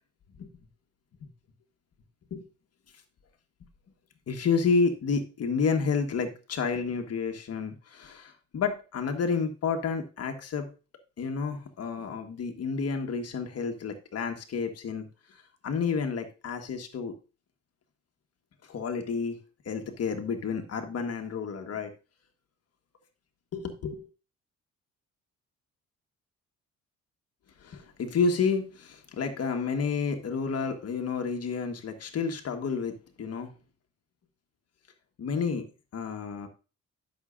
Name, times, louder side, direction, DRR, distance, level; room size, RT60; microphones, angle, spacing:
voice 1, 4.3-10.7 11.2-17.1 18.7-21.9 23.5-24.1 27.6-33.5 35.2-35.7 35.9-36.5, left 5 dB, 55° left, 5 dB, 1.4 m, -30 dB
12.0 x 6.3 x 2.5 m, 0.33 s
cardioid pair, 90°, 30 cm